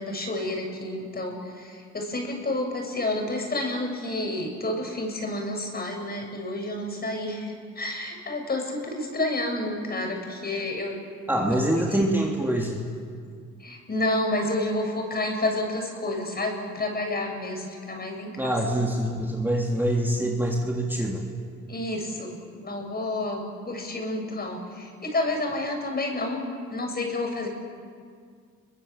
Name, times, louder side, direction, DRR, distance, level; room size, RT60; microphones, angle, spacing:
voice 1, 0.0-11.0 11.4-11.6 11.8-12.0 13.6-18.5 21.7-26.4 26.7-27.5, left 2 dB, 30° left, 2 dB, 7.4 m, -30 dB
voice 2, 11.3-12.8 18.4-21.2, right 1 dB, 5° right, -2 dB, 3.3 m, -25 dB
29.5 x 23.5 x 7.6 m, 2.1 s
cardioid pair, 90°, 30 cm